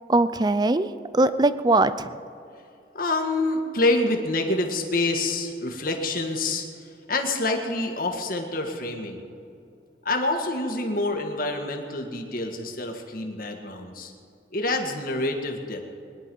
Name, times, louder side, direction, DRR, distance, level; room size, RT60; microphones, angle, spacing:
voice 1, 0.1-2.1, right 2 dB, 20° right, 14 dB, 0.4 m, -21 dB
voice 2, 2.9-6.6 7.1-9.2 10.0-14.1 14.5-15.8, left 2 dB, 50° left, 3 dB, 1.8 m, -27 dB
22.0 x 11.0 x 5.4 m, 2.6 s
head